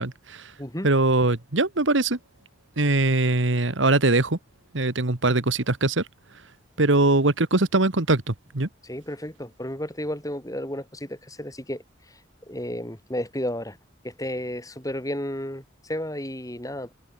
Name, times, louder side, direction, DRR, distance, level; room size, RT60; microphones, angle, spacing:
voice 1, 0.0-0.5 0.8-2.2 2.8-4.4 4.7-6.0 6.8-8.7, right 2 dB, 75° right, 1.7 m, -22 dB
voice 2, 8.8-12.2 12.5-13.8 14.0-16.9, left 1 dB, 15° left, 7.1 m, -32 dB
head